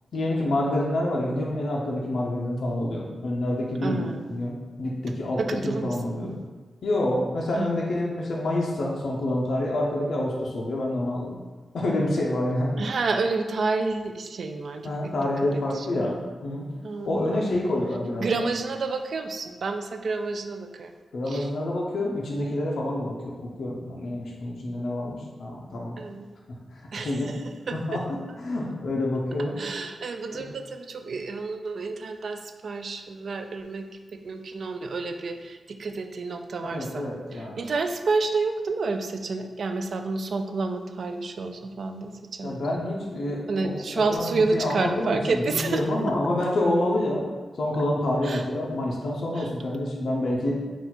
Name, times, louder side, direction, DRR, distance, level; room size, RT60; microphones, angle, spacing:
voice 1, 0.1-6.4 6.8-11.4 11.7-12.8 14.8-16.7 17.1-18.3 21.1-26.0 26.5-27.4 27.7-29.6 30.3-30.5 36.6-37.6 42.4-47.3 47.6-50.6, left 1 dB, 75° left, -2 dB, 0.6 m, -28 dB
voice 2, 3.8-4.4 5.4-6.4 7.6-7.8 12.8-15.3 15.5-16.0 16.8-17.7 18.2-20.9 21.3-21.5 26.0-26.3 26.9-28.0 29.6-42.6 43.5-45.8 48.2-48.4 49.3-49.5, right 3 dB, 65° right, 6 dB, 0.3 m, -30 dB
3.9 x 2.3 x 4.2 m, 1.3 s
wide cardioid pair, 110°, 0 cm